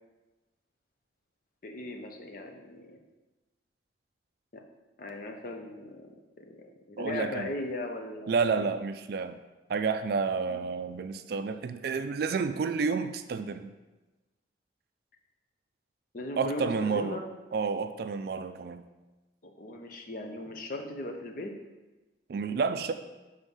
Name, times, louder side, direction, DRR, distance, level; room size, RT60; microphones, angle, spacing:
voice 1, 1.6-3.0 4.5-4.6 5.0-8.7 10.5-10.6 16.1-17.2 19.4-21.5, left 1 dB, 45° left, 3 dB, 0.6 m, -38 dB
voice 2, 7.0-7.5 8.3-9.4 9.7-13.7 16.4-17.2 17.5-18.8 22.3-22.9, right 5 dB, 55° right, 10 dB, 0.3 m, -30 dB
5.5 x 3.5 x 5.4 m, 1.1 s
head